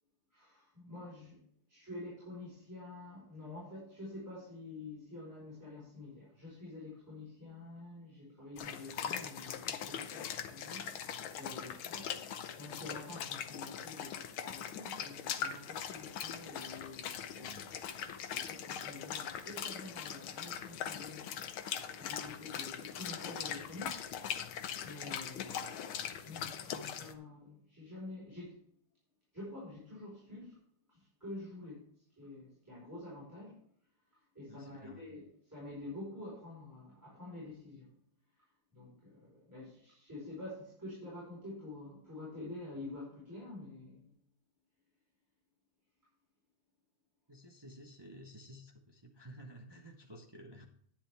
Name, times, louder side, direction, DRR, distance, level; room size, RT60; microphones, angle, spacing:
voice 1, 0.3-1.4 1.7-12.2 12.6-17.8 18.3-24.5 24.8-28.6 29.3-30.6 30.9-31.9 32.2-33.6 34.3-37.9 38.7-44.1, left 2 dB, 10° right, -8 dB, 4.4 m, -48 dB
sound 1, 8.6-27.1, left 8 dB, 75° left, 1.6 m, -41 dB
voice 2, 17.3-17.8 34.5-35.1 47.3-50.6, equal, 40° right, 2 dB, 0.3 m, -53 dB
10.5 x 9.8 x 3.4 m, 0.63 s
omnidirectional pair, 2.3 m